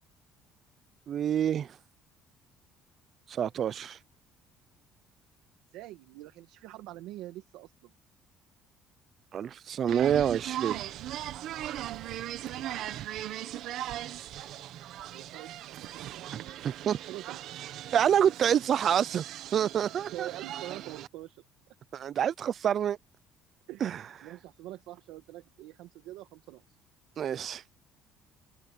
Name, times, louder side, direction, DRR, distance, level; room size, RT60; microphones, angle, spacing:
voice 1, 1.1-1.8 3.3-4.0 9.3-10.8 16.3-16.4 16.6-17.0 17.9-19.2 19.5-20.3 21.9-23.0 23.8-24.0 27.2-27.7, right 9 dB, 35° right, 0.5 m, -27 dB
voice 2, 5.7-7.9 11.8-12.2 12.9-13.1 15.1-16.5 17.0-17.4 20.1-21.4 23.7-26.8, right 16 dB, 80° right, 1.8 m, -45 dB
sound 1, 9.9-21.1, right 12 dB, 55° right, 1.5 m, -39 dB
cardioid pair, 180°, 0 cm